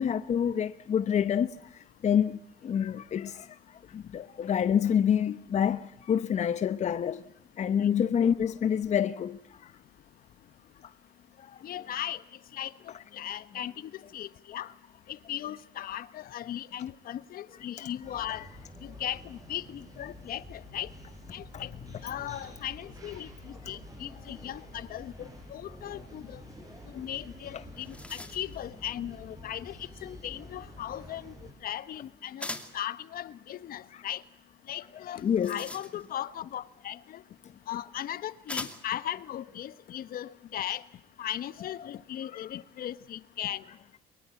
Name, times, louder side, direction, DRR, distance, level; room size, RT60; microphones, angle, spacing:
voice 1, 0.0-7.3 7.6-9.7 10.8-10.9 11.4-11.6 17.8-17.9 21.5-21.6 30.0-30.2 33.9-34.0 35.1-35.6 42.3-42.5, left 8 dB, 45° left, 0.9 m, -28 dB
voice 2, 11.6-12.2 12.5-14.7 15.1-18.5 18.8-20.9 21.3-21.7 22.0-26.4 26.9-31.3 31.6-34.2 34.7-37.2 37.7-40.8 41.2-43.6, left 11 dB, 60° left, 1.3 m, -38 dB
sound 1, 18.0-31.5, left 1 dB, 20° right, 7.5 m, -48 dB
sound 2, 27.3-27.4 27.6-28.6 32.4-32.9 35.1-36.3 37.4-37.5 38.5-39.0, left 1 dB, 5° left, 2.5 m, -41 dB
23.5 x 22.5 x 8.4 m
cardioid pair, 110°, 17 cm